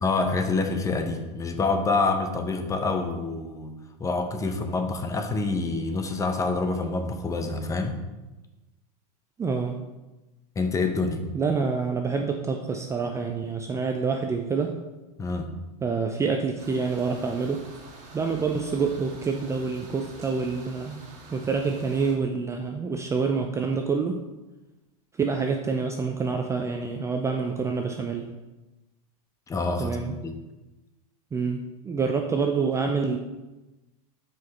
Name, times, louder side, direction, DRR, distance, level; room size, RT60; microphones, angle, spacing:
voice 1, 0.0-3.7 4.0-8.0 10.6-11.2 15.2-15.5 29.5-30.3, left 3 dB, 15° left, 6 dB, 0.7 m, -27 dB
voice 2, 9.4-9.8 11.3-14.8 15.8-17.7 18.1-21.0 21.3-24.2 25.2-28.3 29.8-30.1 31.3-33.2, right 5 dB, 15° right, 3 dB, 0.4 m, -27 dB
sound 1, 16.6-22.1, right 3 dB, 40° right, 1.9 m, -46 dB
6.2 x 4.8 x 4.2 m, 1.1 s
supercardioid pair, 125°, 20 cm